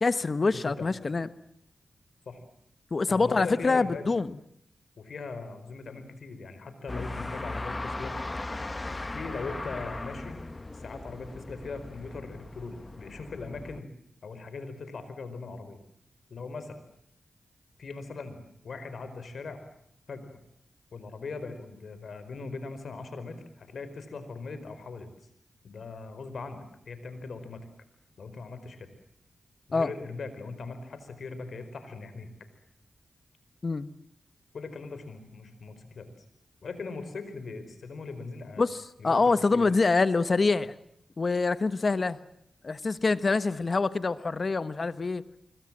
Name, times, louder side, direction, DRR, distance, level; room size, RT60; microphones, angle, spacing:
voice 1, 0.0-1.3 2.9-4.3 29.7-29.9 33.6-33.9 38.6-40.7 41.2-42.2 42.6-45.2, left 3 dB, 50° left, 13 dB, 1.2 m, -25 dB
voice 2, 0.5-0.9 2.3-2.4 3.1-4.1 5.0-8.2 8.6-8.7 9.1-10.4 10.7-13.9 14.2-15.8 16.3-16.8 17.8-19.6 20.1-20.4 20.9-25.1 25.6-27.7 28.2-28.9 29.7-32.3 34.5-36.1 36.6-38.6 39.0-39.7, left 4 dB, 75° left, 11 dB, 4.7 m, -40 dB
sound 1, 6.9-13.8, left 2 dB, 30° left, 1.3 m, -38 dB
26.0 x 23.0 x 7.5 m, 0.75 s
cardioid pair, 55°, 0 cm